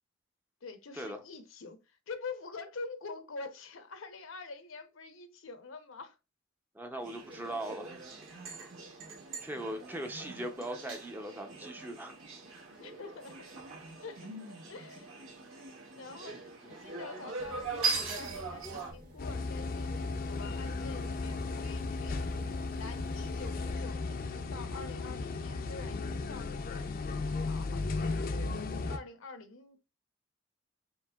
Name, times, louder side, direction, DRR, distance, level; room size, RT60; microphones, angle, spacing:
voice 1, 0.6-6.2 8.8-8.9 12.8-13.5 14.0-15.1 15.9-22.2 22.7-29.8, left 4 dB, 80° left, 0.8 m, -46 dB
voice 2, 6.7-8.0 8.5-8.7 9.4-12.2, right 1 dB, 10° right, 0.6 m, -40 dB
sound 1, 7.0-18.9, right 4 dB, 80° right, 1.4 m, -40 dB
sound 2, 17.4-23.7, left 1 dB, 55° right, 1.7 m, -51 dB
sound 3, 19.2-29.0, left 3 dB, 45° left, 0.5 m, -35 dB
4.6 x 3.2 x 2.3 m
head